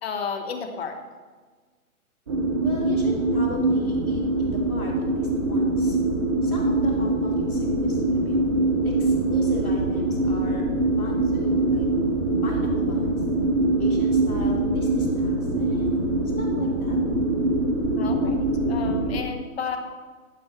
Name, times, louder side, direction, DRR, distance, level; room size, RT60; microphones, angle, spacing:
voice 1, 0.0-1.0 18.0-19.8, left 6 dB, 45° left, 6 dB, 1.3 m, -32 dB
sound 1, 2.3-19.2, right 2 dB, 20° right, 0.4 m, -23 dB
voice 2, 2.6-6.0 6.4-8.4 8.8-10.7 11.0-11.9 12.4-13.2 13.8-17.0, equal, 80° left, -1 dB, 2.6 m, -37 dB
10.5 x 5.1 x 4.8 m, 1.4 s
figure-of-eight pair, 130°, 43 cm